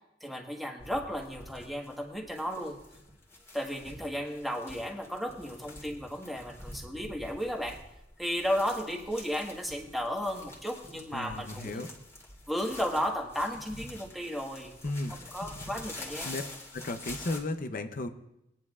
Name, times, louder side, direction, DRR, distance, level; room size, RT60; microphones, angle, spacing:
voice 1, 0.2-2.8 3.5-7.8 8.2-11.9 12.5-14.7 15.1-16.3, equal, ahead, 0 dB, 1.4 m, -34 dB
sound 1, 0.8-17.4, left 2 dB, 15° left, 2.0 m, -47 dB
voice 2, 11.1-11.9 14.8-15.1 16.2-16.4 16.7-18.1, left 2 dB, 50° left, 7 dB, 0.7 m, -34 dB
20.5 x 10.5 x 2.4 m, 0.86 s
head